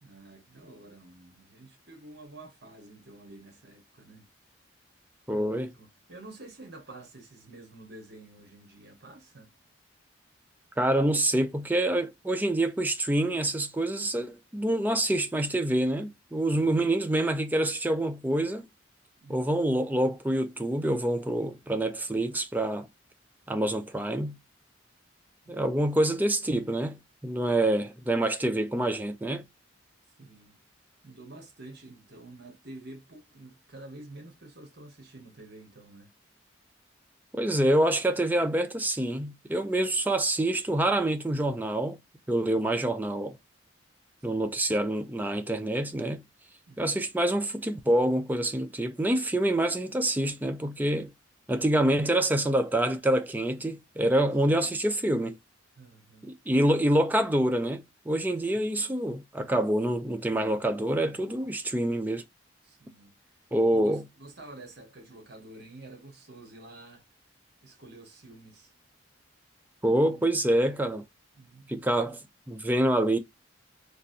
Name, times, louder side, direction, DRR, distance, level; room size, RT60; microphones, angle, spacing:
voice 1, 0.0-4.3 5.3-9.5 16.5-16.9 19.2-19.6 25.4-25.9 30.2-30.6 31.0-36.1 44.3-44.5 46.7-47.0 55.7-56.3 58.4-58.7 61.1-61.3 62.6-63.4 63.7-67.0 67.6-68.7 69.9-70.7 71.3-72.1, right 2 dB, 50° right, 1.2 m, -49 dB
voice 2, 5.3-5.7 10.8-18.6 19.3-22.9 23.5-24.4 25.5-29.4 37.3-42.0 42.3-43.4 44.2-46.2 46.8-51.1 51.5-55.4 56.2-62.2 63.5-64.0 69.8-71.0 71.7-72.2 72.5-73.2, right 1 dB, 10° right, 0.3 m, -26 dB
3.2 x 2.5 x 2.5 m
head